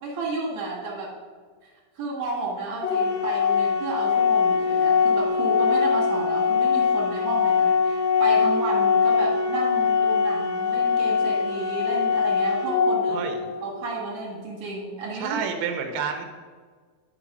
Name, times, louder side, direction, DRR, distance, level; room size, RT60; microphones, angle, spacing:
voice 1, 0.0-1.1 2.0-13.2 13.6-15.4, right 3 dB, 55° right, -4 dB, 2.8 m, -32 dB
Organ, 2.8-13.8, left 6 dB, 85° left, 1.6 m, -22 dB
voice 2, 13.1-13.5 15.1-16.2, right 6 dB, 75° right, 5 dB, 2.4 m, -29 dB
11.0 x 4.6 x 5.5 m, 1.5 s
omnidirectional pair, 4.0 m